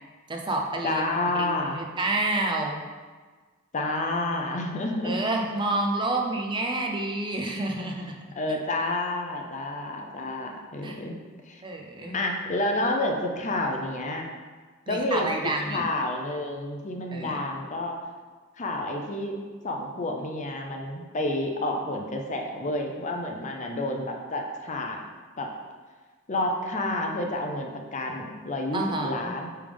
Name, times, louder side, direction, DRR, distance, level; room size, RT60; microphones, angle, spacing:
voice 1, 0.3-1.0 1.3-2.8 5.0-8.1 10.8-11.0 11.6-12.2 14.9-15.8 17.1-17.4 28.7-29.3, right 2 dB, 25° right, 1 dB, 0.6 m, -29 dB
voice 2, 0.8-1.8 3.7-5.2 8.4-11.1 11.5-11.6 12.1-14.3 14.9-17.9 18.6-19.4 19.6-25.0 25.4-25.5 26.3-29.5, left 2 dB, 35° left, 2 dB, 0.6 m, -29 dB
8.5 x 3.5 x 3.5 m, 1.4 s
head